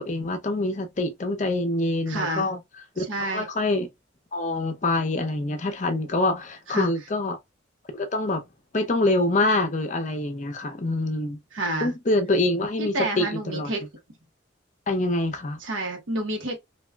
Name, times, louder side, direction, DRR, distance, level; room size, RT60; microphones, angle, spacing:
voice 1, 0.0-2.6 3.0-3.9 4.3-7.4 7.9-8.4 8.7-11.4 11.8-13.7 14.9-15.6, left 2 dB, 40° left, 0.6 m, -25 dB
voice 2, 2.1-2.5 3.0-3.5 6.7-6.9 11.5-11.9 12.8-13.9 15.6-16.6, right 2 dB, 85° right, 0.9 m, -29 dB
3.4 x 2.3 x 2.2 m
head